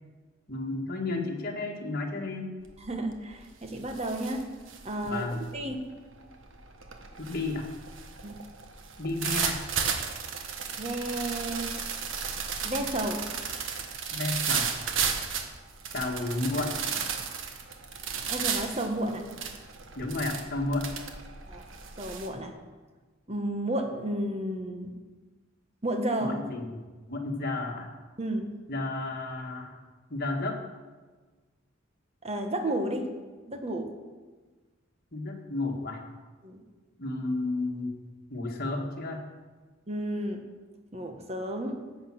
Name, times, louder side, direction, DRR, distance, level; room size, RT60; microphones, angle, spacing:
voice 1, 0.5-2.6 5.0-5.4 7.2-7.7 9.0-9.6 14.1-14.7 15.9-16.7 20.0-20.9 26.2-27.9 28.7-29.7 30.1-30.6 35.1-36.0 37.0-38.0 38.3-39.2, left 2 dB, 50° left, 1 dB, 1.8 m, -32 dB
sound 1, 2.6-3.0 3.3-22.3, right 6 dB, 70° right, 1.4 m, -34 dB
voice 2, 2.8-4.4 4.8-5.3 5.5-5.8 8.2-8.4 10.8-11.7 12.6-13.2 18.3-19.2 21.5-21.6 22.0-22.5 23.3-24.9 25.8-26.4 28.2-28.5 32.2-33.1 33.5-33.9 36.4-36.6 39.9-40.4 40.9-41.8, right 1 dB, 30° right, 4 dB, 1.4 m, -32 dB
13.5 x 8.5 x 6.1 m, 1.4 s
head